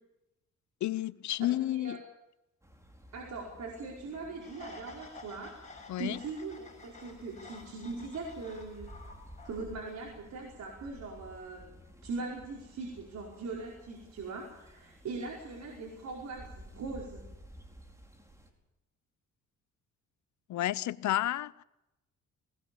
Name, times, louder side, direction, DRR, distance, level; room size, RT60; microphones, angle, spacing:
voice 1, 0.8-2.0 5.9-6.2 20.5-21.6, left 14 dB, 70° left, 0.8 m, -31 dB
sound 1, 2.6-18.5, equal, 10° right, 4.6 m, -54 dB
voice 2, 3.1-8.9 9.4-11.6 12.0-17.2, right 3 dB, 65° right, 5.1 m, -41 dB
sound 2, 4.4-10.1, left 3 dB, 25° left, 7.3 m, -52 dB
21.0 x 20.0 x 7.1 m
cardioid pair, 90°, 30 cm